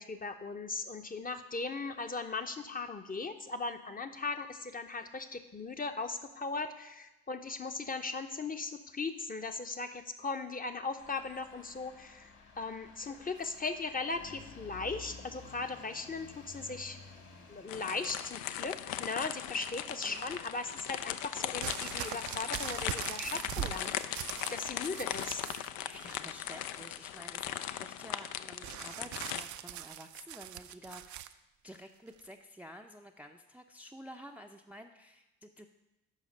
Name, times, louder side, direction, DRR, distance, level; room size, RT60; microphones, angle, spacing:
voice 1, 0.0-17.0 17.5-25.7, left 3 dB, 20° left, 7 dB, 0.8 m, -38 dB
sound 1, 11.0-27.9, left 4 dB, 50° left, 1.8 m, -56 dB
sound 2, 17.7-29.4, left 12 dB, 65° left, 0.5 m, -39 dB
voice 2, 19.9-20.3 25.8-35.7, equal, 5° right, 5 dB, 0.5 m, -51 dB
sound 3, 21.6-25.7 26.0-26.6 28.6-31.3 32.2-32.3, right 12 dB, 50° right, 0.5 m, -41 dB
7.4 x 5.6 x 5.4 m, 0.97 s
hypercardioid pair, 45°, 38 cm